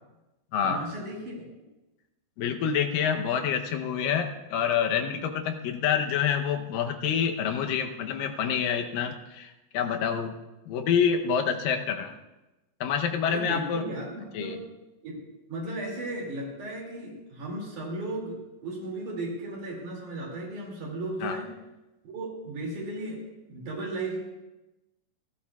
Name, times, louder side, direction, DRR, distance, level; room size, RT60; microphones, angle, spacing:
voice 1, 0.6-1.4 13.2-14.6 15.0-15.2 15.5-21.5 22.0-23.2 23.5-24.2, right 2 dB, 65° right, -1 dB, 4.0 m, -35 dB
voice 2, 2.4-10.4 10.7-12.1 12.8-13.9 14.3-14.6 21.2-21.4, left 7 dB, 90° left, 5 dB, 2.6 m, -27 dB
28.5 x 13.0 x 2.4 m, 1.0 s
omnidirectional pair, 3.8 m